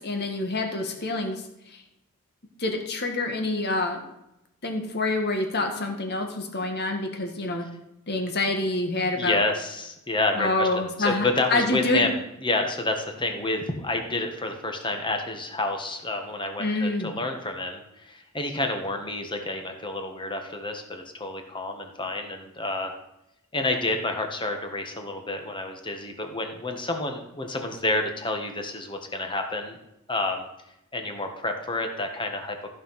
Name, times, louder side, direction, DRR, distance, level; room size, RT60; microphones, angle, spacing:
voice 1, 0.0-1.4 2.6-4.0 4.6-7.7 8.1-9.4 10.3-12.1 16.6-17.1, left 2 dB, 50° left, 4 dB, 1.9 m, -27 dB
voice 2, 9.2-22.9 23.5-29.8 30.1-30.5 30.9-32.7, left 2 dB, 20° left, 4 dB, 1.5 m, -29 dB
14.5 x 5.8 x 5.9 m, 0.86 s
head